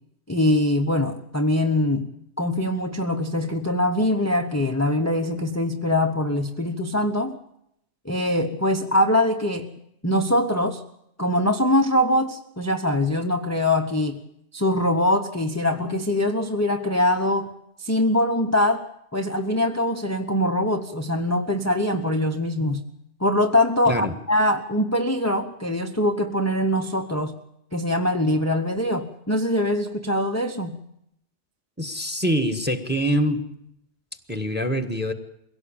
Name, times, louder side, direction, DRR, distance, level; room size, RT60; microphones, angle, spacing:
voice 1, 0.3-2.1 2.4-7.4 8.0-9.7 10.0-10.8 11.2-14.2 14.5-17.5 17.8-22.8 23.2-27.3 27.7-30.8, left 1 dB, 15° left, 5 dB, 0.9 m, -23 dB
voice 2, 23.9-24.2 31.8-33.4 34.3-35.1, equal, 10° right, 9 dB, 1.5 m, -24 dB
22.5 x 17.0 x 8.8 m, 0.78 s
omnidirectional pair, 1.2 m